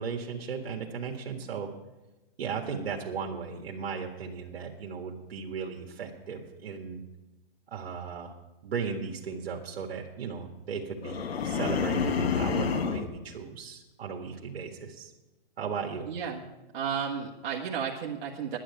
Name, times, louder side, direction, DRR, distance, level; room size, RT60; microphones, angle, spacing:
voice 1, 0.0-1.7 2.4-7.0 7.7-8.3 8.6-15.1 15.6-16.1, right 6 dB, 75° right, 0 dB, 1.8 m, -36 dB
sound 1, 11.0-13.1, left 6 dB, 80° left, 1.5 m, -28 dB
voice 2, 16.1-16.4 16.7-18.6, right 7 dB, 50° right, -3 dB, 1.6 m, -33 dB
10.5 x 10.0 x 8.2 m, 1.1 s
hypercardioid pair, 145°, 30 cm